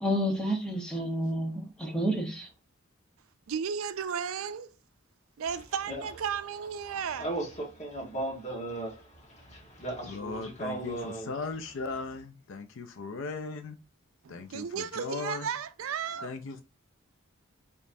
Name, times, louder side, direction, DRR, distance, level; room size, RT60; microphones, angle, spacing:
voice 1, 0.0-2.5, equal, 5° left, 1.0 m, -30 dB
voice 2, 3.5-4.7 5.4-7.3 14.2-16.3, right 7 dB, 80° right, 0.4 m, -34 dB
voice 3, 7.2-11.3, right 2 dB, 35° left, 1.4 m, -36 dB
voice 4, 10.1-13.8 14.3-15.5 16.2-16.6, left 4 dB, 65° left, 0.5 m, -38 dB
5.1 x 3.1 x 2.6 m
head